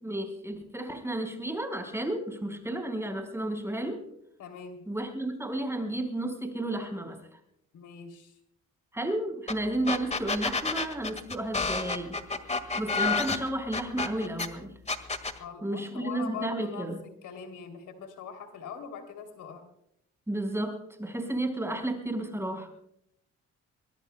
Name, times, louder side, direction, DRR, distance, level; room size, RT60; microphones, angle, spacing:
voice 1, 0.0-4.0 4.9-7.2 8.9-12.2 12.8-14.8 15.6-17.0 20.3-22.7, right 1 dB, 10° right, 4 dB, 4.7 m, -32 dB
voice 2, 4.4-4.8 7.7-8.4 15.4-19.7, left 6 dB, 80° left, 6 dB, 3.1 m, -42 dB
sound 1, 9.5-9.6 9.9-14.5 14.9-15.4, left 4 dB, 20° left, 1.8 m, -29 dB
24.5 x 21.0 x 2.2 m, 0.75 s
cardioid pair, 90°, 30 cm